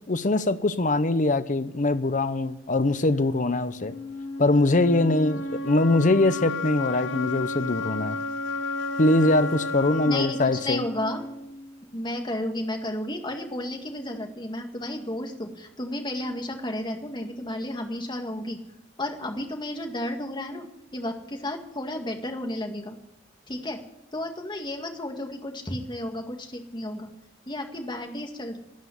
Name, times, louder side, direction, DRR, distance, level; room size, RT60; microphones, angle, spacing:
voice 1, 0.1-3.9 4.4-8.2 9.0-10.9, left 2 dB, 45° left, 0.8 m, -22 dB
sound 1, 3.8-11.8, left 2 dB, 85° left, 1.1 m, -32 dB
voice 2, 10.0-11.2 11.9-18.6 19.0-23.0 23.5-23.8 24.1-27.1 27.5-28.6, left 1 dB, 25° left, 2.0 m, -32 dB
13.0 x 9.3 x 9.8 m
head